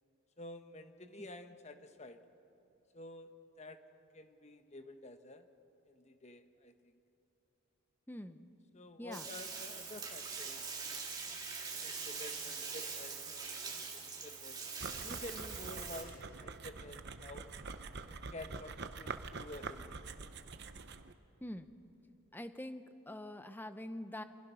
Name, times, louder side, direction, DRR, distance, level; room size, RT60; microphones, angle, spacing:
voice 1, 0.4-2.2 2.9-3.3 3.6-3.8 4.1-5.5 5.9-6.9 8.7-10.6 11.3-13.8 14.2-14.6 15.0-17.5 18.1-20.1, left 1 dB, 30° left, 8 dB, 1.1 m, -50 dB
voice 2, 8.1-8.5 9.0-9.3 21.4-21.7 22.3-24.2, left 1 dB, 10° left, 10 dB, 0.8 m, -45 dB
Bathtub (filling or washing), 9.1-16.0, right 5 dB, 20° right, 2.6 m, -43 dB
sound 1, 14.8-21.1, right 4 dB, 50° right, 0.9 m, -46 dB
28.5 x 26.0 x 5.7 m, 2.8 s
head